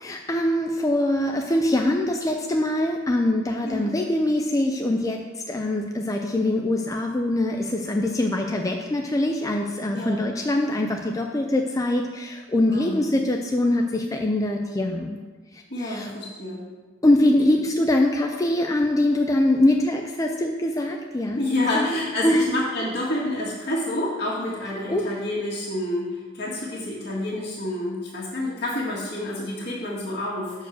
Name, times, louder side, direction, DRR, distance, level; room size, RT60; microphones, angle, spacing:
voice 1, 0.0-15.2 15.5-16.1 17.0-21.4 21.7-22.0 22.2-22.5 24.9-25.0, left 1 dB, 20° left, 2 dB, 0.4 m, -23 dB
voice 2, 9.9-10.2 12.7-13.0 15.7-16.6 21.4-30.7, left 1 dB, 60° left, -7 dB, 1.8 m, -28 dB
6.3 x 4.6 x 6.4 m, 1.4 s
head